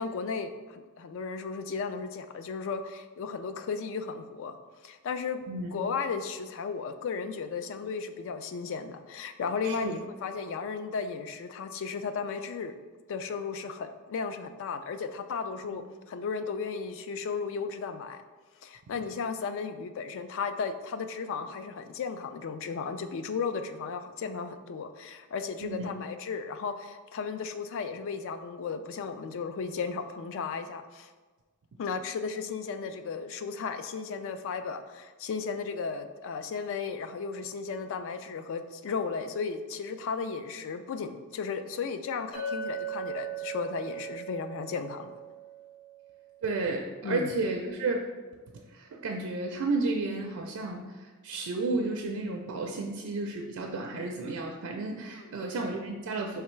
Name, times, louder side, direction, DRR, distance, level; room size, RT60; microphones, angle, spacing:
voice 1, 0.0-4.6 4.8-5.4 5.7-12.7 13.1-18.2 18.6-31.1 31.8-45.1 47.0-47.3 55.1-55.4, left 5 dB, 60° left, 9 dB, 0.3 m, -35 dB
voice 2, 9.6-10.0 15.6-15.8 25.6-25.9 46.4-48.1 48.7-56.4, right 3 dB, 75° right, 2 dB, 0.4 m, -32 dB
Chink clink, 42.3-46.5, right 5 dB, 25° left, 1.1 m, -39 dB
4.6 x 3.3 x 3.1 m, 1.3 s
head